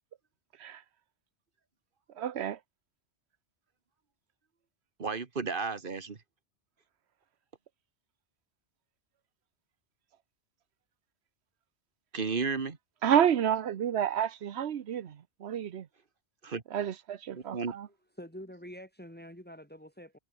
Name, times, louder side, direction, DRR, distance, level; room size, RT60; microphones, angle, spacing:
voice 1, 2.2-2.6 13.0-15.9 16.7-17.9, right 9 dB, 70° right, 1.1 m, -29 dB
voice 2, 5.0-6.2 12.1-12.8 16.4-16.6 17.3-17.8, right 4 dB, 50° right, 1.8 m, -33 dB
voice 3, 18.2-20.2, equal, 10° left, 5.8 m, -46 dB
omnidirectional pair, 1.1 m